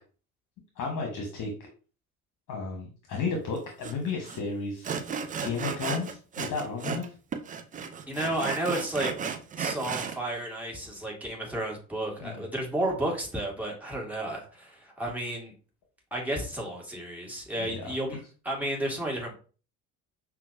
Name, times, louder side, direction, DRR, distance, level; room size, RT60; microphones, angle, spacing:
voice 1, 0.8-1.5 2.5-4.9 5.4-7.1 8.3-8.4 12.2-12.5 17.6-17.9, left 4 dB, 45° left, 1 dB, 1.1 m, -33 dB
Sawing, 3.8-3.9 4.2-4.4 4.8-7.1 7.3-10.2, right 6 dB, 20° right, 0.4 m, -34 dB
voice 2, 8.1-9.1 9.6-15.5 16.1-18.2 18.4-19.3, right 1 dB, 5° right, -2 dB, 1.6 m, -32 dB
5.7 x 2.3 x 2.6 m, 0.37 s
figure-of-eight pair, 60°, 44 cm